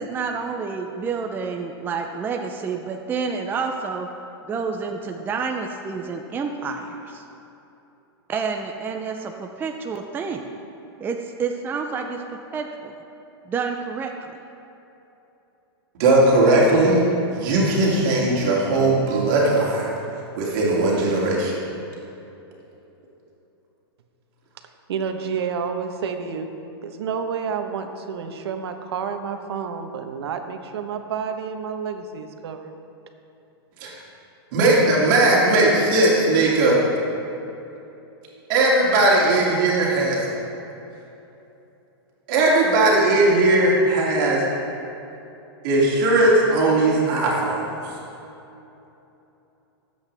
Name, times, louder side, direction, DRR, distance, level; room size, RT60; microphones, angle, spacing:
voice 1, 0.0-4.1 4.5-7.2 8.3-10.6 11.0-12.9 13.5-14.3, right 5 dB, 15° right, 3 dB, 0.5 m, -29 dB
voice 2, 15.9-17.0 17.3-19.9 20.4-21.5 33.8-33.9 34.5-36.8 38.5-40.3 42.3-44.5 45.6-48.0, right 2 dB, 50° right, -4 dB, 2.7 m, -18 dB
voice 3, 24.9-26.5 26.8-32.7, right 6 dB, 75° right, 6 dB, 1.2 m, -29 dB
19.0 x 8.2 x 3.4 m, 2.9 s
hypercardioid pair, 140°, 14 cm